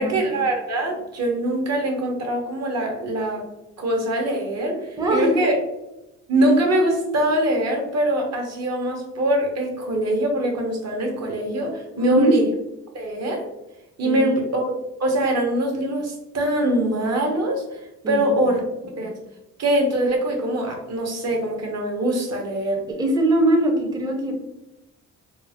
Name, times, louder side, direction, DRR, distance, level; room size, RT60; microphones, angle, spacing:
voice 1, 0.0-3.5 3.8-5.6 6.3-12.4 12.9-13.5 14.0-14.7 15.0-19.1 19.6-22.8, right 1 dB, 60° right, 2 dB, 0.9 m, -23 dB
voice 2, 5.0-5.5 11.9-12.3 14.0-14.3 18.0-18.2 23.0-24.3, right 1 dB, 15° right, 1 dB, 0.5 m, -21 dB
3.6 x 2.1 x 2.8 m, 0.94 s
cardioid pair, 90°, 30 cm